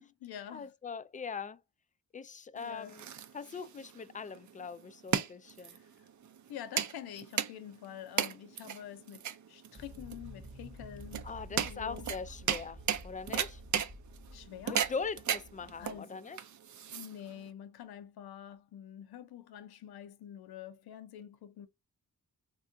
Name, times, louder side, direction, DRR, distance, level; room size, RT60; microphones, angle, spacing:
voice 1, 0.0-0.7 2.5-3.0 5.6-5.8 6.5-12.1 14.3-14.8 15.8-16.2 16.9-21.7, left 10 dB, 80° left, 0.6 m, -47 dB
voice 2, 0.5-1.6 2.1-3.1 3.3-5.8 11.2-13.6 14.7-16.4, left 5 dB, 20° left, 0.3 m, -41 dB
sound 1, 2.6-17.5, right 8 dB, 50° right, 0.5 m, -36 dB
sound 2, 9.7-16.0, right 1 dB, ahead, 0.8 m, -50 dB
3.5 x 2.3 x 2.5 m
cardioid pair, 55°, 37 cm